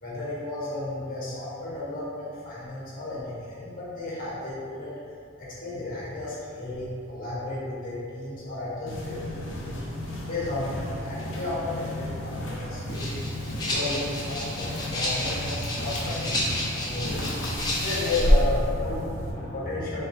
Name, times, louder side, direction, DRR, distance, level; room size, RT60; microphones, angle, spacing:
voice 1, 0.0-4.9 5.4-9.2 9.5-9.7 10.2-13.2 13.6-20.0, left 2 dB, 40° left, -8 dB, 1.3 m, -33 dB
sound 1, 8.9-19.3, equal, 60° left, 0.7 m, -30 dB
Rattle (instrument), 12.9-18.4, left 1 dB, 20° left, 0.8 m, -32 dB
4.6 x 4.0 x 2.8 m, 2.4 s
head